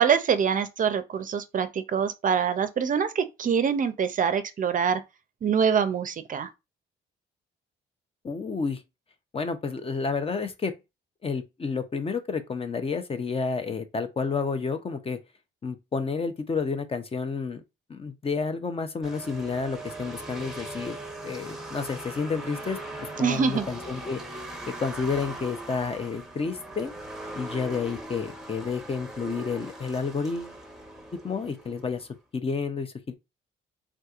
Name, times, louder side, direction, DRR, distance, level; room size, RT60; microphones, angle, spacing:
voice 1, 0.0-5.0 5.4-6.5 23.2-23.7, right 7 dB, 40° right, 0.5 m, -24 dB
voice 2, 8.2-8.8 9.3-10.7 11.2-15.2 15.6-17.6 17.9-21.0 21.2-22.8 23.2-24.4 24.8-26.9 27.4-30.6 31.2-33.1, left 5 dB, 30° left, 0.5 m, -30 dB
sound 1, 19.0-32.1, right 1 dB, 5° right, 0.8 m, -40 dB
3.5 x 2.7 x 2.4 m
cardioid pair, 90°, 20 cm